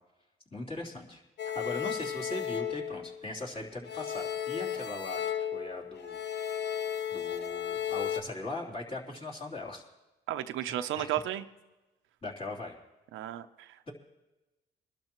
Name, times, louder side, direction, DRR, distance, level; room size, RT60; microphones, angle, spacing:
voice 1, 0.5-1.2 1.5-6.2 7.1-9.8 10.6-11.2 12.2-12.8, left 2 dB, 30° left, -3 dB, 3.4 m, -40 dB
sound 1, 1.4-3.5 3.9-8.2, left 9 dB, 60° left, 0.9 m, -34 dB
voice 2, 10.3-11.4 13.1-13.9, right 12 dB, 85° right, 10 dB, 0.7 m, -34 dB
22.5 x 12.0 x 3.1 m, 1.1 s
cardioid pair, 90°, 20 cm